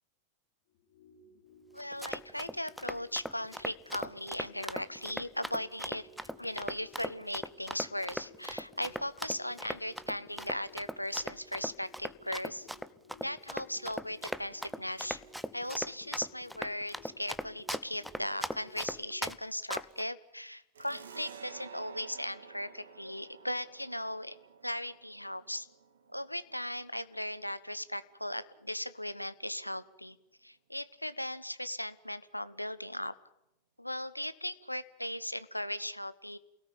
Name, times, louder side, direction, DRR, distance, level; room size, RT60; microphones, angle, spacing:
sound 1, 0.7-19.1, left 2 dB, 50° left, 4.6 m, -59 dB
voice 1, 1.7-12.7 13.2-15.2 15.5-24.4 24.6-25.7 26.1-30.2 30.4-33.1 33.8-36.4, left 1 dB, 90° left, 14 dB, 1.1 m, -38 dB
Run, 1.8-19.4 19.7-20.0, equal, ahead, 0.9 m, -39 dB
sound 2, 20.7-27.9, right 6 dB, 65° right, 2.3 m, -52 dB
28.5 x 17.5 x 8.9 m, 0.86 s
figure-of-eight pair, 90°, 0 cm